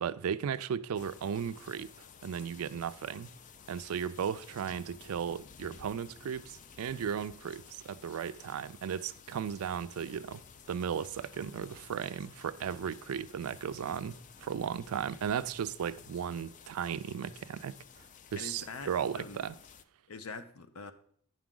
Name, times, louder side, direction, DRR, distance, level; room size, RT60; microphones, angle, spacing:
voice 1, 0.0-1.9 2.2-3.3 3.7-10.4 10.7-17.8 18.3-19.6, right 8 dB, 85° right, 0.4 m, -36 dB
sound 1, 0.9-19.8, left 7 dB, 35° left, 0.4 m, -54 dB
voice 2, 18.4-19.4 20.1-20.9, left 4 dB, 80° left, 0.7 m, -44 dB
9.3 x 6.0 x 3.7 m
head